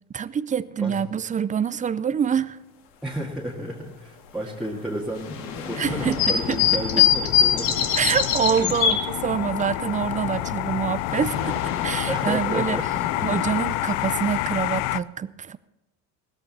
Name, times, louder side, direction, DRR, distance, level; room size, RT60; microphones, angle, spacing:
voice 1, 0.1-2.6 5.8-6.4 8.0-11.6 11.8-12.8 13.2-15.6, right 7 dB, 20° right, 17 dB, 0.4 m, -26 dB
voice 2, 3.0-7.9 8.5-8.7 12.1-13.0, right 1 dB, ahead, -4 dB, 1.9 m, -32 dB
sound 1, 5.2-9.0 10.7-14.5, left 9 dB, 70° left, 2.2 m, -25 dB
sound 2, 5.8-15.0, left 18 dB, 85° left, 0.5 m, -29 dB
16.5 x 13.5 x 4.2 m, 0.99 s
supercardioid pair, 110°, 36 cm